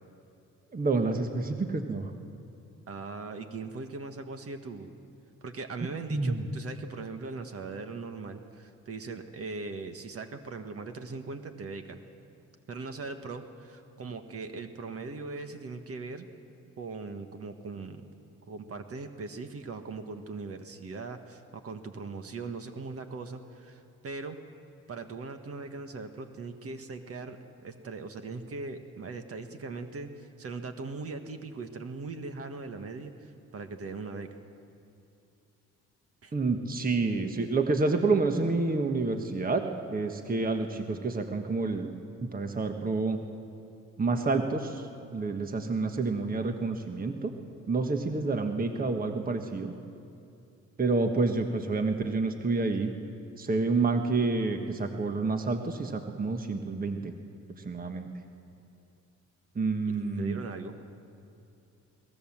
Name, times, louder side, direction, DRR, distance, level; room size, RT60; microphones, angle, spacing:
voice 1, 0.7-2.1 6.1-6.4 36.3-39.6 39.9-41.9 42.2-43.2 44.0-47.3 47.7-49.7 50.8-52.9 53.4-57.1 57.6-58.1 59.5-60.4, right 3 dB, 30° right, 5 dB, 1.4 m, -28 dB
voice 2, 2.9-5.0 5.4-12.0 12.7-16.3 16.8-18.1 18.5-24.4 24.9-27.4 27.6-34.3 36.2-36.3 59.9-60.8, right 3 dB, 50° right, 7 dB, 1.6 m, -40 dB
22.5 x 18.0 x 7.5 m, 2.6 s
cardioid pair, 90°, 30 cm